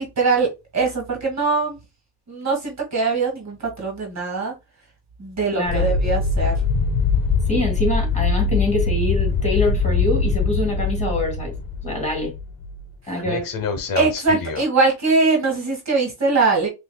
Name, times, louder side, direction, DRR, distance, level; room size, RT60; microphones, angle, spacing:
voice 1, 0.0-1.8 2.3-4.5 5.2-6.5 13.0-13.2 14.0-16.7, right 4 dB, 35° right, 1.8 m, -22 dB
voice 2, 5.5-5.9 7.5-11.5 11.8-12.3 13.1-13.5, left 2 dB, 15° left, 2.5 m, -24 dB
sound 1, 5.7-12.9 13.2-14.7, left 4 dB, 50° left, 1.0 m, -22 dB
5.8 x 2.7 x 2.2 m
cardioid pair, 110°, 44 cm